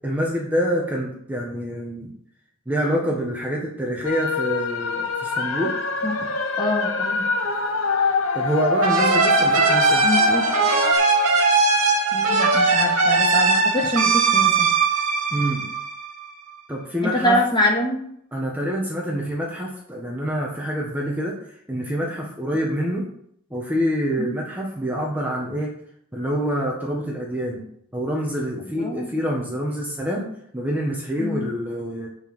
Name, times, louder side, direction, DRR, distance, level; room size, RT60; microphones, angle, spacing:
voice 1, 0.0-2.1 2.6-5.7 8.3-10.0 15.3-15.6 16.7-17.4 18.3-23.1 23.5-25.7 26.1-27.6 27.9-30.3 30.5-32.1, equal, 10° right, -2 dB, 1.5 m, -26 dB
sound 1, 4.0-10.9, left 4 dB, 70° left, 1.1 m, -25 dB
voice 2, 6.6-7.2 10.0-10.6 12.1-14.7 17.0-18.0 24.2-24.4 28.6-29.2 31.2-31.5, left 1 dB, 20° left, -2 dB, 2.5 m, -24 dB
sound 2, 8.8-16.2, right 4 dB, 80° right, 2.0 m, -19 dB
7.0 x 6.8 x 8.0 m, 0.69 s
head